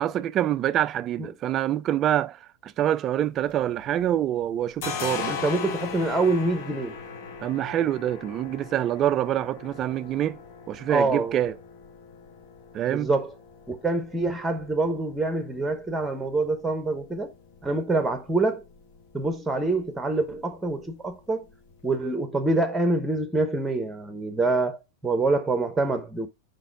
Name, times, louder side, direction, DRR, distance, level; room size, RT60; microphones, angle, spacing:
voice 1, 0.0-5.4 7.4-10.4 10.7-11.5 12.7-13.1, right 11 dB, 30° right, 0.3 m, -26 dB
sound 1, 3.2-4.2 4.4-21.9, left 6 dB, 50° left, 1.1 m, -40 dB
voice 2, 5.3-7.0 10.9-11.4 12.9-13.3 13.7-17.3 17.6-18.6 19.1-21.5 21.8-26.3, right 2 dB, 10° right, 0.9 m, -26 dB
5.2 x 4.0 x 4.5 m
figure-of-eight pair, 90°, 0 cm